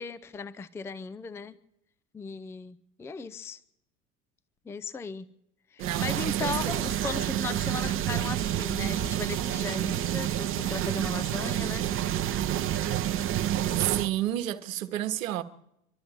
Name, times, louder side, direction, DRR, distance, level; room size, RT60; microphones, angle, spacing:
voice 1, 0.0-1.6 2.1-3.6 4.6-5.3 5.7-11.9, left 5 dB, 5° left, 0.5 m, -37 dB
sound 1, 5.8-14.1, right 12 dB, 30° right, 0.9 m, -29 dB
voice 2, 5.8-6.9 13.8-15.4, right 13 dB, 65° right, 1.3 m, -31 dB
25.0 x 12.5 x 4.6 m
figure-of-eight pair, 75°, 43 cm